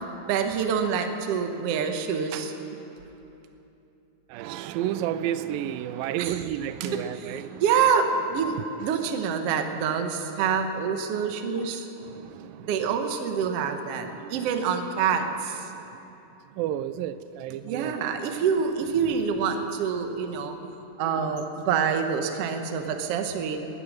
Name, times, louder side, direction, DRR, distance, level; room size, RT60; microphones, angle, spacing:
voice 1, 0.2-2.5 6.2-6.4 6.8-11.8 12.7-15.6 17.6-20.7 21.0-23.6, right 6 dB, 65° right, 6 dB, 1.6 m, -26 dB
voice 2, 4.3-7.6 8.6-8.7 12.0-12.7 14.1-14.5 16.6-17.9 18.3-18.4, right 11 dB, 90° right, 14 dB, 2.3 m, -32 dB
19.5 x 11.0 x 6.4 m, 2.9 s
omnidirectional pair, 4.0 m